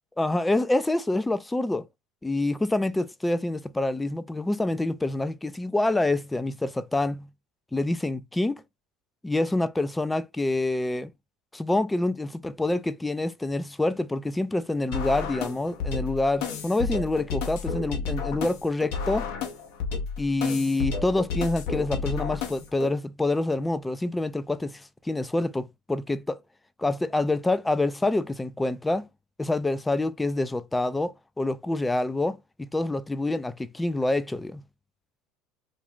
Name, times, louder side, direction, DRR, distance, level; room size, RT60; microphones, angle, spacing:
voice 1, 0.2-1.9 2.2-7.3 7.7-8.6 9.2-11.1 11.5-19.3 20.2-26.4 26.8-29.1 29.4-34.6, left 2 dB, 10° left, 0.3 m, -27 dB
sound 1, 14.9-22.9, left 5 dB, 65° left, 0.8 m, -31 dB
2.6 x 2.3 x 3.5 m
hypercardioid pair, 80°, 0 cm